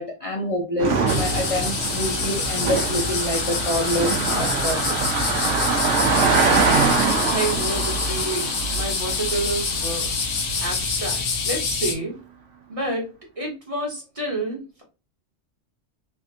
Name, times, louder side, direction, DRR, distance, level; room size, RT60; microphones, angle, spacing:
voice 1, 0.0-4.9, left 1 dB, 45° left, 0.4 m, -27 dB
Car passing by, 0.8-10.4, right 4 dB, 80° right, 0.9 m, -24 dB
sound 1, 1.1-11.9, left 4 dB, 85° left, 1.0 m, -26 dB
voice 2, 6.2-10.1 10.6-12.2 12.7-14.8, right 2 dB, 30° right, 0.8 m, -30 dB
3.4 x 2.5 x 2.5 m
omnidirectional pair, 1.3 m